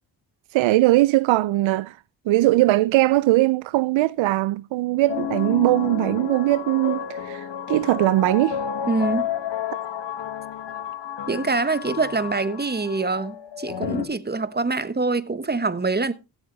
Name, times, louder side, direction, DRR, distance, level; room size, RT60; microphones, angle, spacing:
voice 1, 0.5-2.0 2.3-8.6, right 17 dB, 70° right, 0.6 m, -20 dB
sound 1, 5.1-14.0, left 8 dB, 60° left, 1.8 m, -31 dB
voice 2, 8.9-9.2 11.3-16.1, right 3 dB, 20° right, 1.3 m, -25 dB
16.5 x 7.4 x 4.0 m
supercardioid pair, 45°, 48 cm